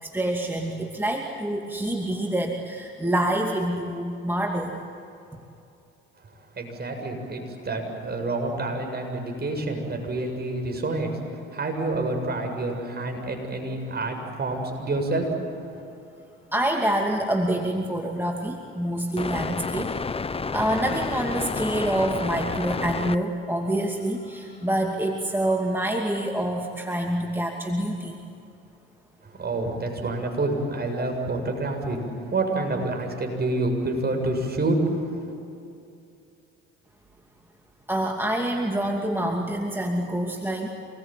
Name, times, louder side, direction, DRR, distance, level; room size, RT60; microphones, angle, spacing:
voice 1, 0.0-4.8 5.3-5.4 16.5-20.0 20.5-28.2 37.9-40.7, right 1 dB, 5° right, 1 dB, 2.6 m, -26 dB
voice 2, 6.6-15.3 15.7-15.8 29.2-32.0 32.3-35.0, right 2 dB, 35° right, 4 dB, 7.4 m, -28 dB
sound 1, 19.2-23.2 23.4-23.5 24.8-24.9 25.3-25.5 26.0-26.1, left 4 dB, 20° left, 0.9 m, -30 dB
27.0 x 21.0 x 9.3 m, 2.6 s
supercardioid pair, 75°, 30 cm